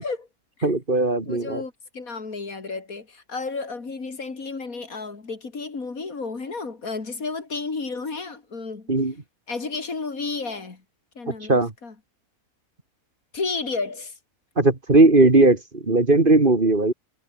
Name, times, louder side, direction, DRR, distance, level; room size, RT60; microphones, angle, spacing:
voice 1, 0.6-1.6 8.9-9.1 11.5-11.7 14.6-16.9, right 2 dB, 35° right, 2.6 m, -18 dB
voice 2, 1.3-8.9 9.5-10.8 11.1-11.9 13.3-14.1, left 4 dB, 70° left, 3.3 m, -32 dB
omnidirectional pair, 1.5 m